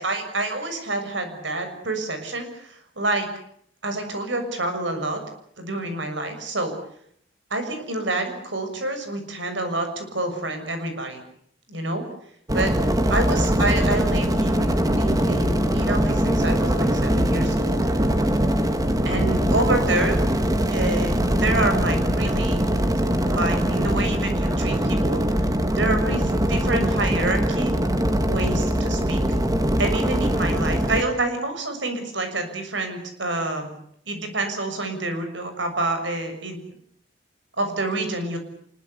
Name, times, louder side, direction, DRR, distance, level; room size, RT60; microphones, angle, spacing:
voice 1, 0.0-3.3 3.8-5.2 5.6-6.7 7.5-11.2 11.7-12.0 12.5-12.7 13.1-17.8 19.0-20.2 20.7-22.6 23.3-25.5 25.7-27.7 28.3-29.2 29.8-33.7 34.1-36.6 37.6-38.4, right 2 dB, 70° right, 7 dB, 6.8 m, -27 dB
sound 1, 12.5-31.0, equal, 20° right, 1.9 m, -22 dB
25.0 x 22.0 x 8.3 m, 0.67 s
head